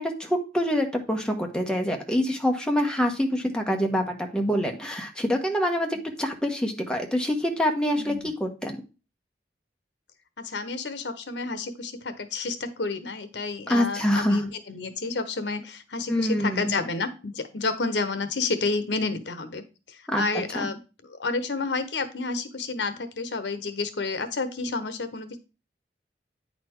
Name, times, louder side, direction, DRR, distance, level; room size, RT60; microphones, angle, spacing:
voice 1, 0.0-8.8 13.7-14.4 16.1-16.7 20.1-20.2 20.5-20.7, equal, 5° left, 2 dB, 1.1 m, -26 dB
voice 2, 8.0-8.3 10.4-20.8 21.1-25.4, left 3 dB, 75° left, 11 dB, 1.0 m, -30 dB
9.3 x 4.3 x 4.5 m, 0.31 s
head